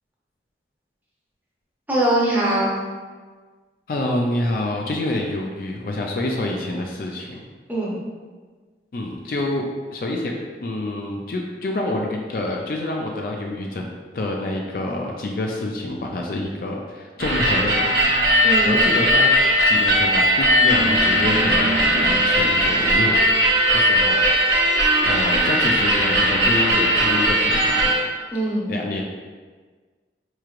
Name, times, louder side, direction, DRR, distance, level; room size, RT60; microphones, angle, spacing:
voice 1, 1.9-2.8 7.7-8.0 18.4-18.8 28.3-28.7, right 1 dB, 10° right, -7 dB, 0.8 m, -22 dB
voice 2, 3.9-7.4 8.9-10.3 10.6-13.9 14.1-18.1 18.6-19.3 19.6-23.1 23.4-24.2 25.0-28.0 28.7-29.0, left 2 dB, 50° left, 1 dB, 0.4 m, -27 dB
sound 1, 17.2-27.9, equal, 70° right, 0.9 m, -18 dB
4.6 x 3.1 x 2.4 m, 1.4 s
head